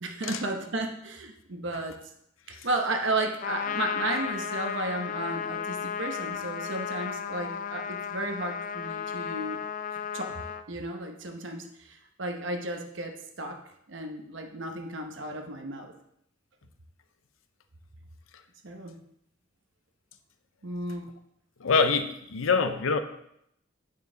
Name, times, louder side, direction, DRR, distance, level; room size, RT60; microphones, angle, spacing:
voice 1, 0.0-2.0 2.5-9.6 10.1-10.4 10.7-13.6 13.9-15.9 18.6-19.0 20.6-21.1, right 2 dB, 65° right, 4 dB, 0.9 m, -33 dB
Trumpet, 3.4-10.6, left 7 dB, 40° left, 0.4 m, -34 dB
voice 2, 21.6-23.0, left 4 dB, 90° left, 9 dB, 0.7 m, -25 dB
9.0 x 5.6 x 3.9 m, 0.76 s
head